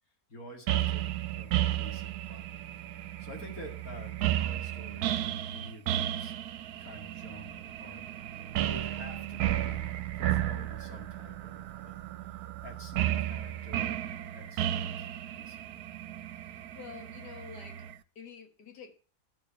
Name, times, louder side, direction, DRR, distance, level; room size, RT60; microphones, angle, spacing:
voice 1, 0.3-2.6 2.9-15.8, left 1 dB, 60° left, 2 dB, 2.6 m, -50 dB
sound 1, 0.7-17.9, right 12 dB, 75° right, 1.1 m, -33 dB
voice 2, 16.7-17.9 18.2-18.9, left 7 dB, 90° left, 7 dB, 1.9 m, -48 dB
10.0 x 6.9 x 5.9 m, 0.39 s
omnidirectional pair, 1.7 m